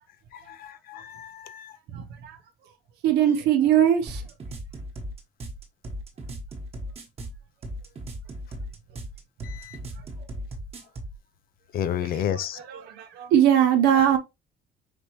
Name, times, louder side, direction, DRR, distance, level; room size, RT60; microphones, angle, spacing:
voice 1, 0.3-1.7 9.4-9.8 11.7-12.6, left 9 dB, 60° left, 0.6 m, -31 dB
voice 2, 1.9-2.4 3.0-4.2 12.7-14.2, right 10 dB, 80° right, 0.7 m, -21 dB
sound 1, 4.1-11.2, equal, 35° right, 1.3 m, -37 dB
5.1 x 3.0 x 3.0 m
cardioid pair, 110°, 17 cm